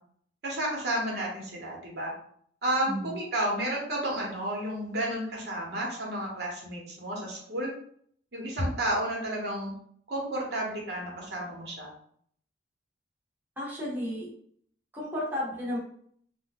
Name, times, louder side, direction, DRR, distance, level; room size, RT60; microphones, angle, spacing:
voice 1, 0.4-2.1 2.6-7.7 8.3-9.7 10.1-11.9, right 1 dB, 60° right, -3 dB, 1.0 m, -31 dB
voice 2, 2.9-3.2 13.6-14.3 14.9-15.8, left 1 dB, 10° right, -7 dB, 0.8 m, -33 dB
2.6 x 2.2 x 3.6 m, 0.62 s
head